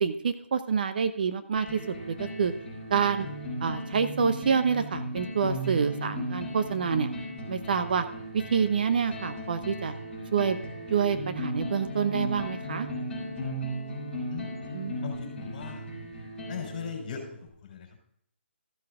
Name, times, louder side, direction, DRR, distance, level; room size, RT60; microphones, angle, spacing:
voice 1, 0.0-2.5 2.9-3.3 3.6-7.1 7.5-8.0 8.3-9.9 10.3-10.6 10.9-12.9 14.7-15.1, right 6 dB, 45° right, 10 dB, 0.8 m, -27 dB
sound 1, 1.6-17.5, equal, 5° left, 4.6 m, -36 dB
voice 2, 15.0-15.8 16.5-17.2 17.7-17.9, left 7 dB, 35° left, 2 dB, 4.1 m, -38 dB
14.0 x 7.5 x 3.6 m, 0.69 s
figure-of-eight pair, 155°, 7 cm